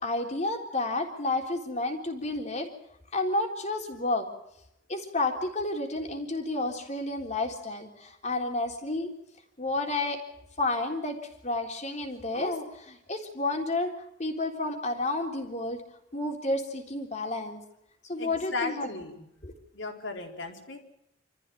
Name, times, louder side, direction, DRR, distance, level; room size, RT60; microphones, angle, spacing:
voice 1, 0.0-2.7 3.1-4.3 4.9-9.1 9.6-10.2 10.6-11.2 11.4-13.9 14.2-15.8 16.1-17.6 18.1-18.9 19.4-19.5, left 2 dB, 35° left, 3 dB, 3.7 m, -30 dB
voice 2, 18.2-19.3 19.7-20.8, left 3 dB, 75° left, 3 dB, 4.2 m, -36 dB
27.0 x 14.5 x 9.2 m, 0.84 s
head